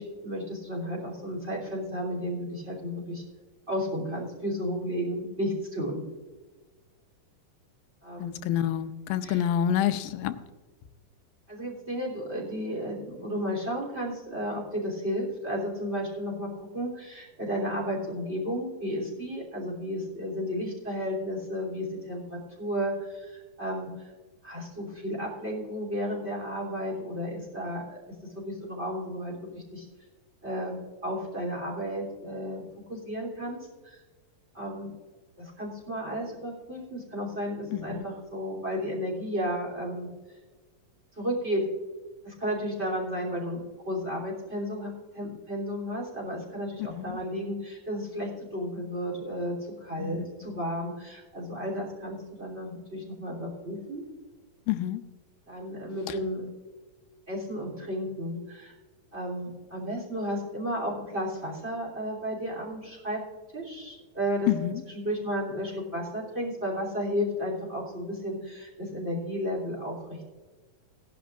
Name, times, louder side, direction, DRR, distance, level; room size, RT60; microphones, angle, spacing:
voice 1, 0.0-3.2 3.7-6.0 8.0-8.4 9.2-9.5 11.5-24.1 24.4-28.0 28.3-29.9 30.4-32.6 32.9-33.6 33.8-34.0 34.5-34.9 35.4-40.4 41.2-41.7 42.2-49.5 49.8-54.0 55.5-56.5 57.3-58.7 59.1-63.2 63.5-64.5 64.8-70.3, equal, 20° right, -2 dB, 3.1 m, -33 dB
voice 2, 8.2-10.3 37.7-38.1 46.9-47.0 50.0-50.2 54.7-55.0 64.5-64.7, left 11 dB, 85° left, 10 dB, 2.4 m, -27 dB
17.5 x 11.0 x 2.5 m, 1.3 s
omnidirectional pair, 4.0 m